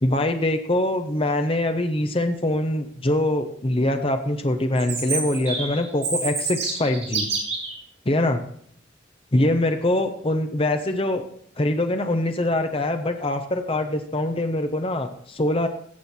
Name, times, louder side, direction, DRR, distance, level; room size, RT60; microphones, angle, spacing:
voice 1, 0.0-7.3 8.0-8.4 9.3-11.2 11.6-15.7, left 1 dB, 30° left, 7 dB, 1.0 m, -23 dB
Chirp tweet, 4.8-7.7, right 4 dB, 40° right, 3.9 m, -28 dB
15.0 x 7.9 x 4.4 m, 0.66 s
head